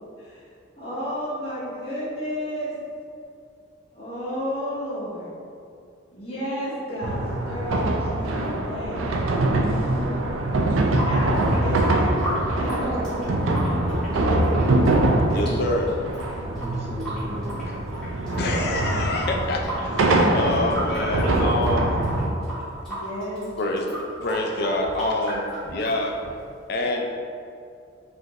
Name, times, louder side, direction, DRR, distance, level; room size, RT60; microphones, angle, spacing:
voice 1, 0.8-2.8 3.9-5.3 6.1-9.1 11.0-13.1 13.9-14.0 19.8-19.9 22.9-23.5, equal, 30° left, -10 dB, 0.9 m, -32 dB
sound 1, 7.0-22.3, right 2 dB, 85° right, 0.4 m, -23 dB
voice 2, 9.4-10.2 12.8-13.4 15.1-15.6 16.5-17.9 21.6-22.5, equal, 30° right, -3 dB, 0.5 m, -37 dB
Water tap faucet / Sink (filling or washing) / Drip, 10.7-26.6, right 1 dB, 5° left, 1.4 m, -35 dB
voice 3, 15.3-15.9 18.2-21.9 23.6-26.2 26.7-27.1, left 2 dB, 50° left, 1 dB, 0.4 m, -26 dB
4.9 x 2.6 x 2.8 m, 2.4 s
head